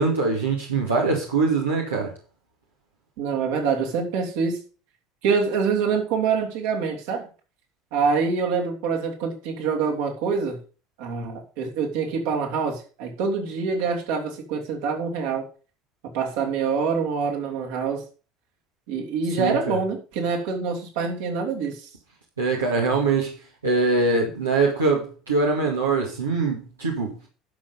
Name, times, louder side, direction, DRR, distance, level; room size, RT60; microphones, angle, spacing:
voice 1, 0.0-2.1 19.4-19.8 22.4-23.3 23.6-27.2, right 3 dB, 90° right, 2.2 m, -23 dB
voice 2, 3.2-4.6 5.2-7.3 7.9-10.6 11.0-15.4 16.1-18.0 18.9-21.9, right 5 dB, 70° right, 3.0 m, -25 dB
11.0 x 6.2 x 5.4 m
hypercardioid pair, 65°, 0 cm